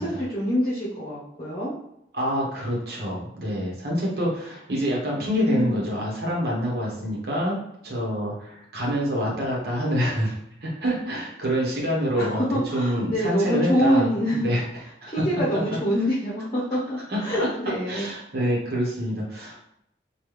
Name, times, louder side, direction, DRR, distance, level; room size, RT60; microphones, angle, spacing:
voice 1, 0.0-1.7 5.1-5.8 12.2-14.5 15.1-18.1, equal, 30° left, -7 dB, 0.8 m, -25 dB
voice 2, 2.1-7.6 7.8-10.3 10.6-12.4 12.7-15.1 17.1-17.5 17.9-19.6, equal, 55° right, -4 dB, 1.1 m, -26 dB
3.3 x 2.3 x 3.2 m, 0.77 s
head